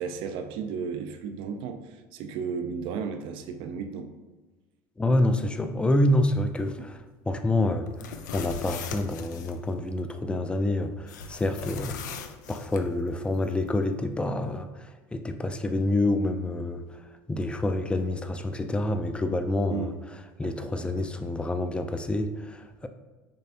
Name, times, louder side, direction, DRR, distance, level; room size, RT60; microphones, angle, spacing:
voice 1, 0.0-4.2 19.7-19.9 20.6-21.0, right 6 dB, 60° right, 7 dB, 0.4 m, -34 dB
voice 2, 5.0-22.9, left 1 dB, 10° left, 7 dB, 0.4 m, -28 dB
sound 1, 7.9-9.5 11.1-12.8, left 6 dB, 90° left, 0.4 m, -39 dB
5.4 x 3.3 x 2.8 m, 1.2 s
hypercardioid pair, 85°, 10 cm